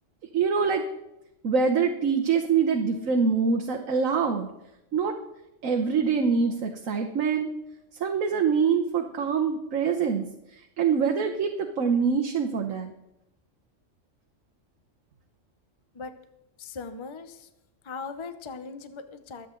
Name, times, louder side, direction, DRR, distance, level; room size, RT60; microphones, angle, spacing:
voice 1, 0.3-0.8 1.4-4.5 4.9-5.1 5.6-7.5 8.0-10.3 10.5-12.9, right 5 dB, 85° right, 4 dB, 1.4 m, -24 dB
voice 2, 16.6-17.5 17.8-19.5, left 4 dB, 30° left, 10 dB, 0.7 m, -39 dB
23.5 x 8.5 x 3.8 m, 0.89 s
omnidirectional pair, 1.3 m